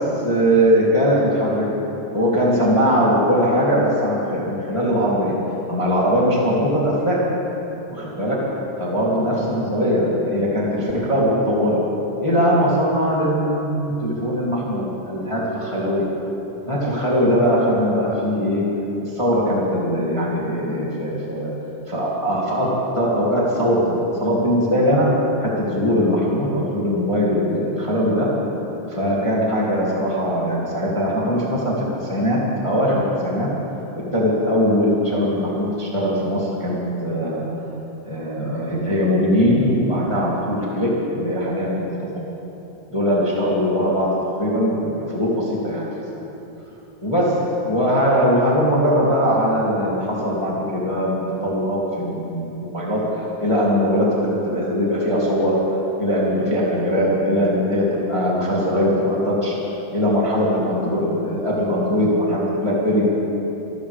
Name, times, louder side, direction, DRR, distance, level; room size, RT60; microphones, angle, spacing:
voice 1, 0.2-1.7 2.1-5.3 5.7-7.2 7.9-8.4 8.8-11.8 12.2-16.1 16.7-18.7 19.0-21.5 21.9-25.1 25.4-28.3 28.9-33.5 34.1-37.4 38.1-42.3 42.9-46.2 47.0-47.3 47.6-53.0 53.4-55.6 56.0-59.5 59.9-63.0, equal, 10° left, -6 dB, 1.9 m, -20 dB
25.0 x 13.0 x 3.5 m, 3.0 s
omnidirectional pair, 4.0 m